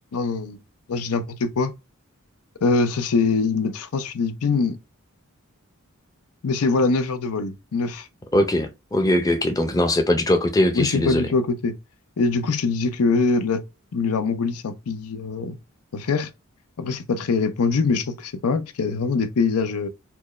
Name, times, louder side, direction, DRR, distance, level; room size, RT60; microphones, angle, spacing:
voice 1, 0.1-0.6 0.9-1.7 2.6-4.8 6.4-8.1 10.7-11.7 12.2-13.6 13.9-15.6 15.9-16.3 16.8-19.9, left 4 dB, 90° left, 0.6 m, -23 dB
voice 2, 8.3-11.3, left 1 dB, 15° left, 0.5 m, -21 dB
4.4 x 2.2 x 3.1 m
head